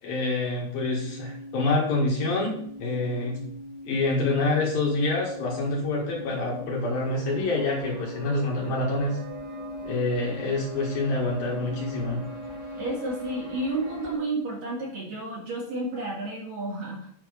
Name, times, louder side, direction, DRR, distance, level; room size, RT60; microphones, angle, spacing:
voice 1, 0.0-2.5 2.8-3.4 3.8-9.2 9.8-12.2, left 2 dB, 60° left, -3 dB, 3.3 m, -26 dB
sound 1, 0.8-14.1, left 1 dB, 10° left, 2.2 m, -41 dB
sound 2, 5.8-14.2, right 2 dB, 80° right, 1.1 m, -44 dB
voice 2, 12.7-17.1, right 2 dB, 55° right, -5 dB, 3.6 m, -31 dB
9.6 x 6.2 x 5.1 m, 0.66 s
omnidirectional pair, 5.1 m